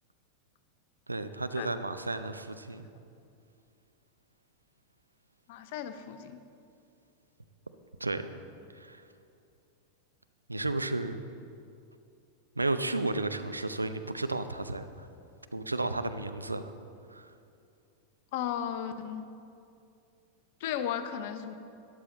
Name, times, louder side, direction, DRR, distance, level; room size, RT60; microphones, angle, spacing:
voice 1, 1.1-2.9 8.0-8.3 8.7-9.0 10.5-11.2 12.6-15.1 15.5-16.7 17.1-17.3, right 2 dB, 80° right, 10 dB, 0.5 m, -33 dB
voice 2, 5.5-6.4 18.3-19.2 20.6-21.6, left 9 dB, 50° left, 10 dB, 0.8 m, -35 dB
13.0 x 11.5 x 4.0 m, 2.5 s
figure-of-eight pair, 90°, 0 cm